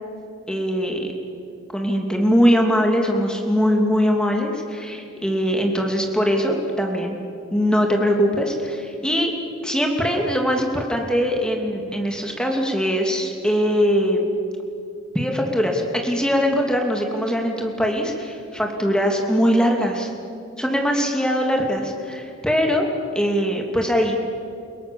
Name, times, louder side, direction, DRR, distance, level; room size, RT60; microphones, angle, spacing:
voice 1, 0.5-1.1 1.7-7.2 7.5-9.3 9.6-14.3 15.1-20.1 20.6-22.9 23.1-24.3, equal, 5° left, 1 dB, 2.7 m, -21 dB
29.5 x 18.0 x 7.1 m, 2.6 s
head